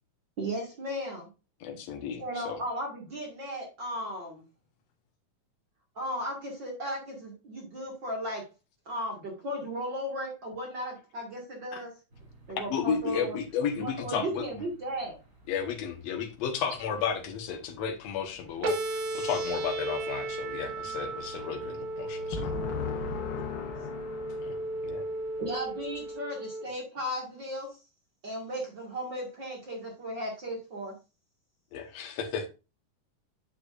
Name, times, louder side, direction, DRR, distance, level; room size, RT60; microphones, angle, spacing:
voice 1, 0.4-1.3 2.2-4.4 6.0-8.5 8.9-11.9 12.5-13.4 13.8-15.2 25.4-27.8 28.2-30.9, equal, 40° right, -1 dB, 2.1 m, -35 dB
voice 2, 1.6-2.6 12.7-14.4 15.5-22.4 24.4-24.5 24.8-25.1 31.7-32.5, left 7 dB, 60° left, 4 dB, 2.2 m, -33 dB
sound 1, 12.1-26.1, equal, 25° right, 4.0 m, -55 dB
sound 2, 18.6-26.6, right 2 dB, 70° right, 2.9 m, -35 dB
voice 3, 22.3-25.4, left 7 dB, 85° left, 3 dB, 2.5 m, -37 dB
8.4 x 7.6 x 2.5 m, 0.29 s
omnidirectional pair, 3.7 m